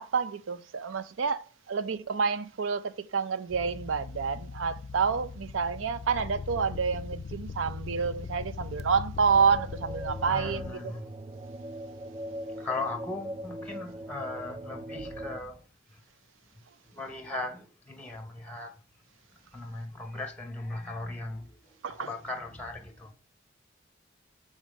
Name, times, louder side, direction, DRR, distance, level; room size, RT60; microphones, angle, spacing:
voice 1, 0.0-10.9 21.8-22.1, right 5 dB, 85° right, 0.5 m, -29 dB
sound 1, 3.5-10.7, left 5 dB, 55° left, 0.4 m, -40 dB
sound 2, 9.3-15.4, right 1 dB, 25° right, 0.3 m, -40 dB
voice 2, 10.3-11.1 12.5-16.0 16.5-18.8 19.5-23.1, left 2 dB, 5° left, 0.7 m, -38 dB
7.0 x 3.7 x 5.1 m
head